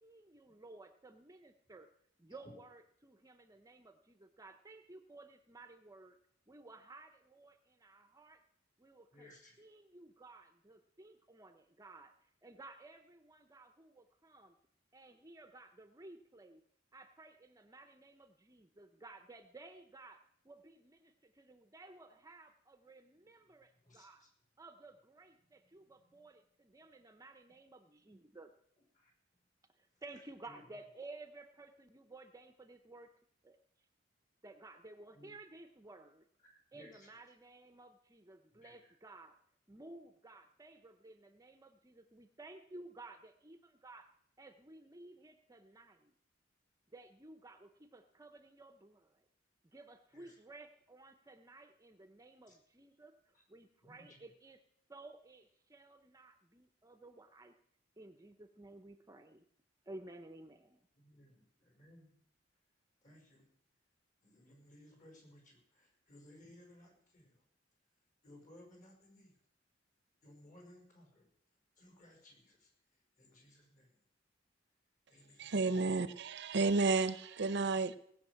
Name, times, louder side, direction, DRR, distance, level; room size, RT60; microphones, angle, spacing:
voice 1, 0.0-1.9 2.2-6.2 6.5-8.4 8.8-9.3 9.6-14.6 14.9-16.6 16.9-24.2 24.6-28.5 29.8-33.1 33.4-33.6 34.4-36.3 36.7-39.4 39.7-44.1 44.4-46.1 46.9-49.2 49.6-54.6 54.9-57.5 58.0-59.4 59.9-60.9, right 2 dB, 20° right, 0.7 m, -55 dB
voice 2, 9.1-9.6 23.1-23.3 23.8-24.3 25.6-26.3 28.0-28.1 28.9-29.4 29.9-30.0 30.5-30.8 35.1-35.3 36.4-37.1 38.5-38.9 50.1-50.4 52.5-52.6 53.3-53.4 53.8-54.3 60.9-62.1 63.0-63.5 64.2-67.4 68.2-69.4 70.2-71.3 71.8-72.7 73.2-74.0 75.1-75.9, left 1 dB, 45° left, 5.5 m, -61 dB
voice 3, 75.4-78.0, right 3 dB, 65° right, 0.7 m, -32 dB
18.0 x 6.5 x 8.4 m
head